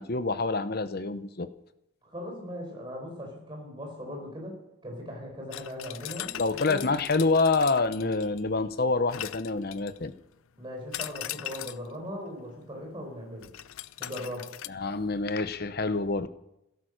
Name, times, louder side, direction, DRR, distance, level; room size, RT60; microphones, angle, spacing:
voice 1, 0.0-1.5 6.4-10.1 14.7-16.3, left 3 dB, 45° left, 12 dB, 0.8 m, -27 dB
voice 2, 2.0-6.9 10.6-13.5 14.0-14.5, equal, 25° right, 0 dB, 4.4 m, -39 dB
sound 1, 5.5-8.5 9.1-10.1 10.9-11.9 13.4-14.7, left 13 dB, 75° left, 0.5 m, -40 dB
16.5 x 13.0 x 6.5 m, 0.87 s
head